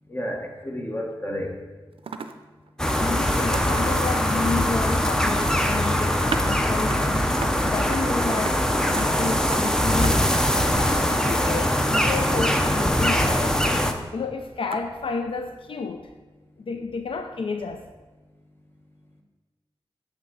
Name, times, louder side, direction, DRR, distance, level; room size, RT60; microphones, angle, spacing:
voice 1, 0.1-1.5, equal, 25° left, 1 dB, 1.2 m, -31 dB
sound 1, 1.1-1.2 1.4-1.6 1.9-2.4 2.6-2.8 3.5-4.2 4.9-5.2 6.3-6.4 6.9-7.0 7.4-7.6 7.9-8.1 8.4-8.6 9.0-9.1 9.5-9.6 10.0-10.1 10.6-10.7 11.1-11.2 11.6-11.7 12.1-12.2 12.7-12.8 13.6-13.8 14.7-14.8, right 5 dB, 75° right, 0.4 m, -36 dB
sound 2, 2.8-13.9, equal, 5° left, 0.6 m, -22 dB
voice 2, 3.0-7.3 7.6-16.1 16.6-17.9, left 4 dB, 70° left, 6 dB, 0.4 m, -31 dB
7.9 x 3.5 x 6.3 m, 1.2 s
wide cardioid pair, 85°, 10 cm